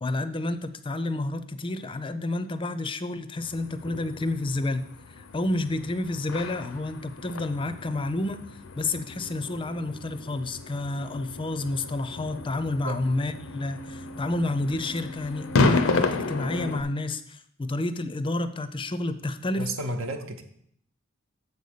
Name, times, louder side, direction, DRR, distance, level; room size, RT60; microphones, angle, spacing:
voice 1, 0.0-4.9 5.2-19.7, left 2 dB, 25° left, 12 dB, 0.5 m, -30 dB
sound 1, 3.4-16.8, left 3 dB, 80° left, 0.6 m, -32 dB
voice 2, 19.6-20.4, right 1 dB, 80° right, 5 dB, 0.9 m, -32 dB
7.0 x 4.1 x 6.6 m, 0.69 s
head